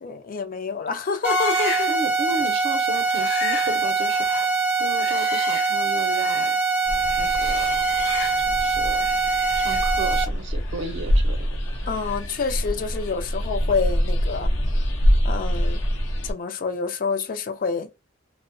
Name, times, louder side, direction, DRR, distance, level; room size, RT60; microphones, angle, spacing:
voice 1, 0.0-1.9 11.9-14.5 15.2-15.8 16.2-17.9, left 5 dB, 45° left, 0.4 m, -27 dB
sound 1, 1.2-2.0 2.3-2.5 2.9-6.6 6.9-8.6 8.9-12.7 12.9-13.1, left 5 dB, 65° left, 1.0 m, -35 dB
sound 2, 1.2-10.3, right 4 dB, 5° right, 0.5 m, -23 dB
voice 2, 1.9-4.3 4.8-6.6 7.2-7.8 8.6-9.1 9.6-11.5, right 3 dB, 65° right, 0.6 m, -33 dB
sound 3, 6.9-16.3, equal, 85° left, 0.6 m, -25 dB
2.7 x 2.0 x 2.5 m
head